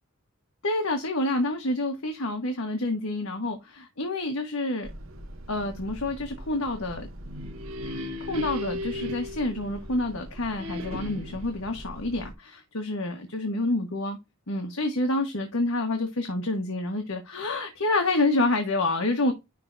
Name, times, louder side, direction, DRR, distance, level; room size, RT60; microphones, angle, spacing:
voice 1, 0.6-4.9 5.5-7.1 7.8-14.2 14.5-19.3, left 2 dB, 80° left, 1.4 m, -28 dB
sound 1, 4.8-12.3, right 1 dB, 70° right, 0.9 m, -43 dB
sound 2, 7.1-10.1 10.6-11.5, left 1 dB, 90° right, 1.6 m, -36 dB
10.5 x 3.6 x 2.6 m
head